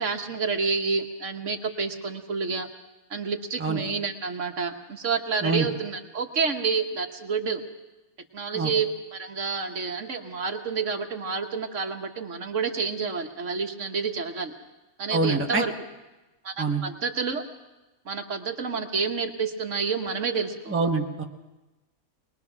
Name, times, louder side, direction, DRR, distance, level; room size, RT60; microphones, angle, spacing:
voice 1, 0.0-2.7 3.1-7.6 8.3-14.5 15.0-15.7 16.4-17.4 18.0-20.8, right 5 dB, 55° right, 5 dB, 1.5 m, -29 dB
voice 2, 15.1-15.6 16.6-16.8 20.7-21.2, right 3 dB, 10° right, 2 dB, 1.0 m, -25 dB
22.5 x 20.5 x 6.0 m, 1.1 s
omnidirectional pair, 1.5 m